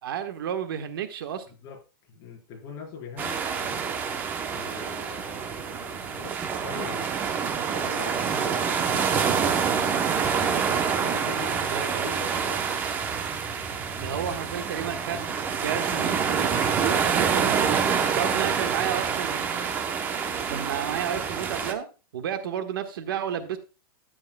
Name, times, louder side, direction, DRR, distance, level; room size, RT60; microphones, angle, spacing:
voice 1, 0.0-1.4 11.7-12.1 14.0-17.8 18.1-19.6 20.5-21.9 22.1-23.6, right 8 dB, 65° right, 8 dB, 1.4 m, -32 dB
voice 2, 1.5-3.9 4.5-10.1 10.7-12.7 13.5-14.1 18.1-18.3, left 5 dB, 30° left, -1 dB, 4.3 m, -42 dB
sound 1, 3.2-21.7, right 6 dB, 15° right, 0.8 m, -27 dB
12.5 x 9.5 x 2.2 m, 0.32 s
supercardioid pair, 175°, 12 cm